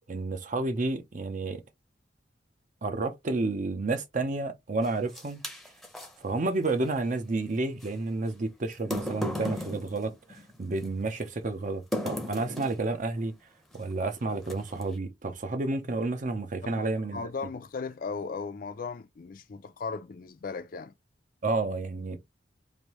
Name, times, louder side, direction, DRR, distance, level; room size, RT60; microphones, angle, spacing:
voice 1, 0.1-1.6 2.8-5.4 6.2-13.4 13.7-17.2 21.4-22.2, right 3 dB, 45° right, 0.6 m, -30 dB
sound 1, 4.8-6.1 7.8-7.9 8.7-10.9 11.9-12.9 13.7-13.9 14.4-14.9, left 1 dB, ahead, 0.7 m, -35 dB
voice 2, 17.1-20.9, left 4 dB, 50° left, 0.4 m, -37 dB
3.2 x 2.6 x 3.0 m
head